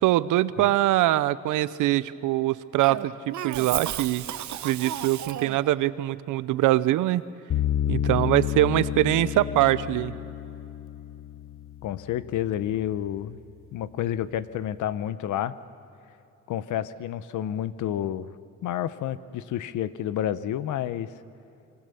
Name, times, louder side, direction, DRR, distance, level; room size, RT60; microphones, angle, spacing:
voice 1, 0.0-4.2 4.6-7.2 7.9-10.1, right 15 dB, 90° right, 16 dB, 0.8 m, -23 dB
Cough, 2.8-5.7, right 11 dB, 70° right, 1.0 m, -34 dB
sound 1, 7.5-12.6, left 11 dB, 45° left, 0.7 m, -30 dB
voice 2, 11.8-13.4 13.7-15.6 16.5-18.3 18.6-21.1, left 11 dB, 80° left, 15 dB, 0.9 m, -30 dB
26.0 x 25.0 x 7.0 m, 2.9 s
cardioid pair, 90°, 30 cm